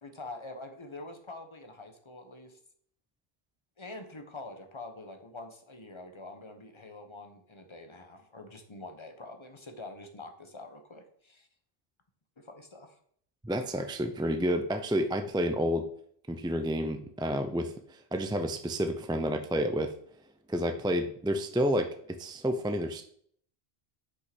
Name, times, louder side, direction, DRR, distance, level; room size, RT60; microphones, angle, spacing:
voice 1, 0.0-2.6 3.8-11.5 12.4-13.0, left 2 dB, 30° left, 6 dB, 1.1 m, -45 dB
voice 2, 13.4-15.9 16.3-19.9 20.5-21.9 22.2-23.1, equal, 5° right, 6 dB, 0.3 m, -30 dB
6.4 x 5.5 x 6.0 m, 0.62 s
omnidirectional pair, 1.1 m